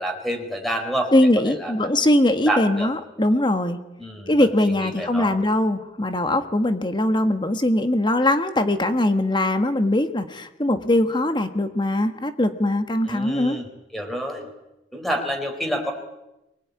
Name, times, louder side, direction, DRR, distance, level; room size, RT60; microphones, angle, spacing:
voice 1, 0.0-1.1 1.4-1.7 2.5-2.9 4.0-4.4 4.7-5.3 13.1-13.7 13.9-14.5 14.9-15.9, equal, ahead, 3 dB, 4.5 m, -28 dB
voice 2, 1.1-3.8 4.3-13.6, left 1 dB, 25° left, 8 dB, 1.5 m, -21 dB
24.0 x 20.0 x 9.6 m, 0.93 s
head